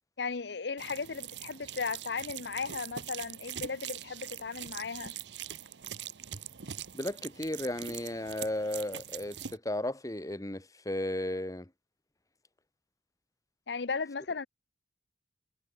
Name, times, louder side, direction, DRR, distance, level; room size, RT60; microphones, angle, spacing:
voice 1, 0.2-5.1 13.7-14.5, left 5 dB, 75° left, 0.8 m, -36 dB
sound 1, 0.8-9.6, right 10 dB, 85° right, 1.0 m, -43 dB
voice 2, 6.9-11.7, left 1 dB, 20° left, 2.0 m, -34 dB
head